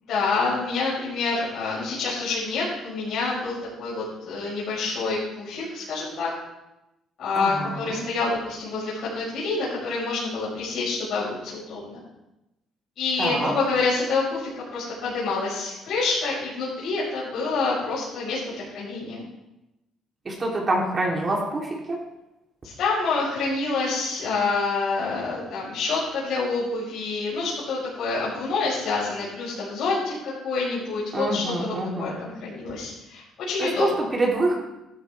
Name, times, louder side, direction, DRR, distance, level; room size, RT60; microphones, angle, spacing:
voice 1, 0.1-6.3 7.2-12.0 13.0-19.2 22.6-33.9, left 3 dB, 70° left, -7 dB, 5.5 m, -27 dB
voice 2, 7.3-8.1 13.2-13.6 20.2-22.0 31.1-32.1 33.6-34.6, right 2 dB, 30° right, -2 dB, 3.4 m, -26 dB
15.0 x 12.0 x 3.6 m, 0.93 s
cardioid pair, 115°, 0 cm